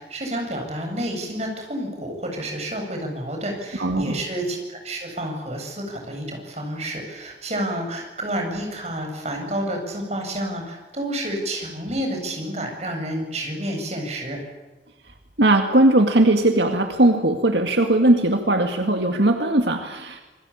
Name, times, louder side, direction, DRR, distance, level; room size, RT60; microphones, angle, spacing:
voice 1, 0.0-14.4, right 1 dB, 40° right, 2 dB, 7.9 m, -29 dB
voice 2, 3.8-4.2 15.4-20.2, right 1 dB, 80° right, 5 dB, 2.1 m, -19 dB
28.0 x 21.5 x 8.7 m, 1.2 s
head